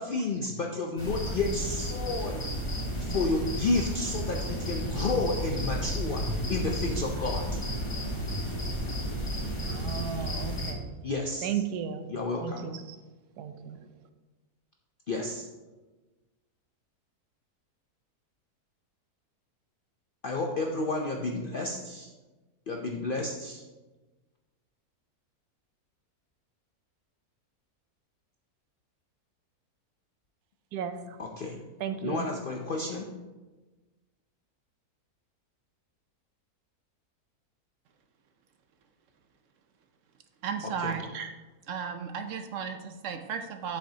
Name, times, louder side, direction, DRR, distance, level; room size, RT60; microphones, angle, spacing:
voice 1, 0.0-2.5 3.0-7.5 11.0-11.5 12.1-12.7 15.1-15.5 20.2-22.1 22.7-23.6 31.2-31.6 32.0-33.1 40.6-40.9, left 3 dB, 65° left, 1 dB, 0.5 m, -31 dB
sound 1, 1.0-10.7, equal, 20° left, 1.0 m, -32 dB
voice 2, 9.7-11.0 11.4-12.1 12.4-13.0 13.4-13.8 30.7-31.2 31.8-32.3, right 8 dB, 85° right, 8 dB, 1.2 m, -34 dB
voice 3, 40.4-41.3 41.7-43.8, right 6 dB, 65° right, 7 dB, 0.8 m, -34 dB
7.8 x 6.7 x 2.8 m, 1.2 s
omnidirectional pair, 1.6 m